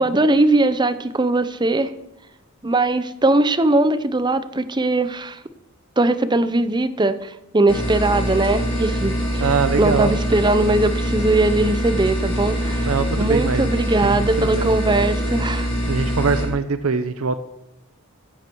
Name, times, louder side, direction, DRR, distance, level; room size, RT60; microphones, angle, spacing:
voice 1, 0.0-1.9 2.6-5.4 6.0-15.7, right 2 dB, 20° right, 13 dB, 0.7 m, -20 dB
sound 1, 7.7-16.5, equal, 25° left, 3.6 m, -24 dB
voice 2, 9.4-10.1 12.9-13.6 14.0-14.7 15.9-17.4, right 4 dB, 90° right, 11 dB, 0.7 m, -22 dB
15.0 x 10.5 x 4.6 m, 0.89 s
head